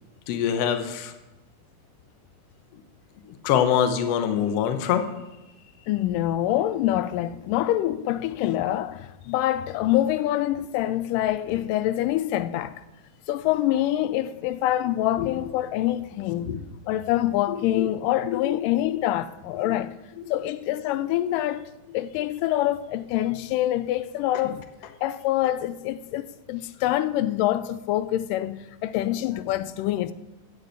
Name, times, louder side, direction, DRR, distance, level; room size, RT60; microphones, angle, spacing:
voice 1, 0.3-1.1 3.4-5.1 15.2-15.3 16.5-16.6 17.5-17.9 18.3-18.6 20.2-20.3, left 9 dB, 65° left, 1.7 m, -24 dB
voice 2, 5.9-12.8 13.3-16.5 16.9-19.9 20.3-21.7 21.9-24.6 25.0-30.1, left 13 dB, 85° left, 2.1 m, -25 dB
8.5 x 8.2 x 8.0 m
omnidirectional pair, 3.8 m